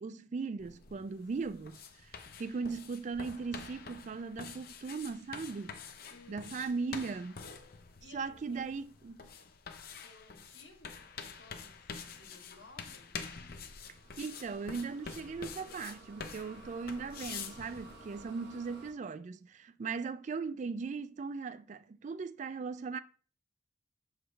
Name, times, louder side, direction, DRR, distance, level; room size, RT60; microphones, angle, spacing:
voice 1, 0.0-5.8 6.3-7.5 8.1-9.3 14.2-23.0, right 4 dB, 40° right, 0.3 m, -38 dB
sound 1, 0.6-18.2, left 5 dB, 50° left, 0.7 m, -47 dB
voice 2, 6.1-6.7 8.0-8.8 10.0-13.2, left 2 dB, 85° left, 1.4 m, -58 dB
sound 2, 13.8-18.9, right 2 dB, 60° right, 1.3 m, -55 dB
6.3 x 4.8 x 3.2 m
head